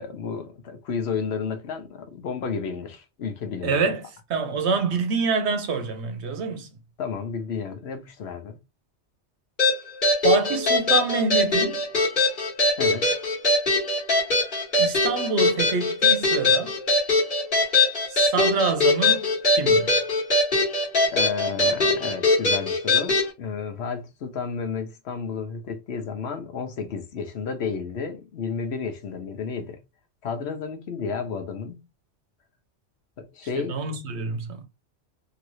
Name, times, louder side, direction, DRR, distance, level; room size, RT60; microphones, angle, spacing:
voice 1, 0.0-3.9 7.0-8.6 12.8-13.1 21.1-29.8 30.2-31.8 33.2-33.9, left 5 dB, 65° left, 0.9 m, -32 dB
voice 2, 3.6-4.0 4.3-6.7 10.2-11.8 14.8-16.7 18.1-19.9 33.7-34.6, right 4 dB, 70° right, 1.0 m, -26 dB
sound 1, 9.6-23.3, left 2 dB, 45° left, 1.4 m, -21 dB
3.1 x 2.7 x 2.6 m
omnidirectional pair, 1.2 m